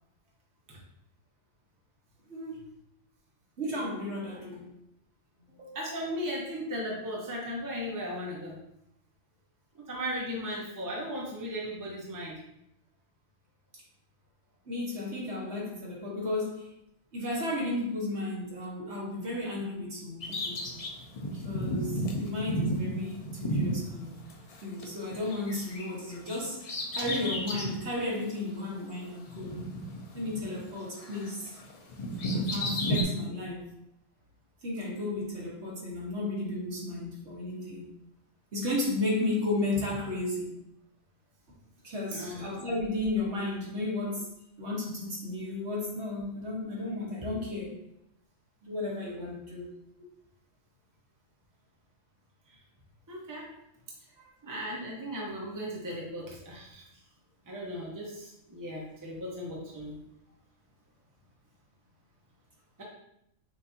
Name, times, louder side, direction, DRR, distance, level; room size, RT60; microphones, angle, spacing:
voice 1, 3.6-4.7 5.6-5.8 14.7-16.7 17.1-20.6 21.3-24.1 24.6-29.5 30.1-31.5 32.3-33.7 34.6-37.9 38.5-40.5 41.8-44.3 44.6-47.7 48.6-49.7, left 2 dB, 60° right, -4 dB, 1.5 m, -33 dB
voice 2, 5.7-8.6 9.7-12.4 42.1-42.5 52.5-52.6 53.1-53.5 54.4-56.9 57.5-60.0, equal, 20° right, -3 dB, 0.7 m, -37 dB
Bird vocalization bird call bird song, 20.2-24.8 25.1-27.8 28.3-28.4 29.3-30.7 31.0-33.0, equal, 55° left, 0.4 m, -33 dB
6.3 x 2.7 x 2.7 m, 0.80 s
omnidirectional pair, 1.3 m